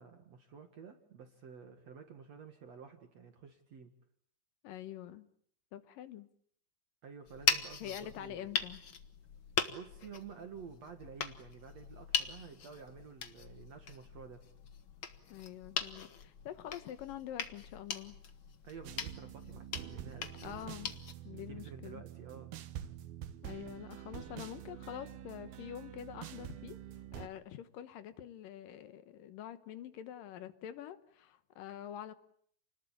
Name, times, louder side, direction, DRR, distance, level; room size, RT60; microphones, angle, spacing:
voice 1, 0.0-3.9 7.0-8.7 9.7-14.4 18.6-20.8 21.5-22.5, right 6 dB, 50° right, 2.6 m, -51 dB
voice 2, 4.6-5.3 5.7-6.3 7.8-8.8 15.3-18.2 20.4-20.9 21.2-22.0 23.4-26.8 27.1-32.1, left 11 dB, 70° left, 2.8 m, -46 dB
sound 1, 7.3-21.1, left 6 dB, 50° left, 1.6 m, -40 dB
sound 2, 18.9-27.3, right 11 dB, 80° right, 3.2 m, -47 dB
29.5 x 20.0 x 8.7 m
omnidirectional pair, 4.3 m